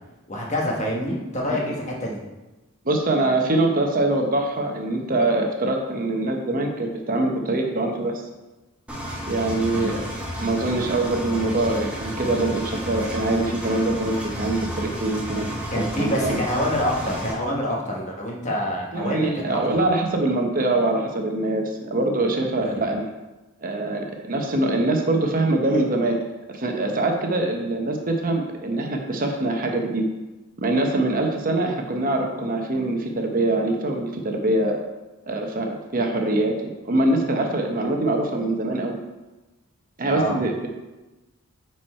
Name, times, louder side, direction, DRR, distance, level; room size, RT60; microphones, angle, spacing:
voice 1, 0.3-2.2 9.7-9.9 15.7-19.8 22.6-22.8 40.1-40.3, equal, 35° left, -2 dB, 1.5 m, -26 dB
voice 2, 2.8-8.1 9.3-10.0 10.4-15.5 15.7-16.4 18.9-23.1 23.6-26.2 26.5-30.0 30.6-34.8 35.3-39.0 40.0-40.7, right 2 dB, 40° right, 3 dB, 0.9 m, -23 dB
Engine, 8.9-17.3, equal, 5° right, 1.3 m, -32 dB
9.2 x 4.5 x 4.4 m, 1.1 s
head